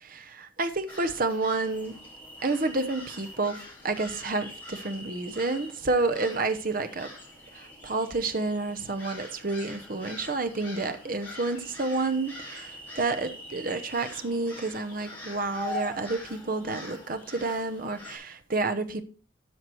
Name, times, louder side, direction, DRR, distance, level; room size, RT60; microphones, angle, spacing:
voice 1, 0.0-1.9 2.4-7.1 7.8-19.0, right 3 dB, 45° right, 0.9 m, -29 dB
sound 1, 0.9-18.2, left 1 dB, 10° left, 2.4 m, -43 dB
12.5 x 4.7 x 4.5 m
head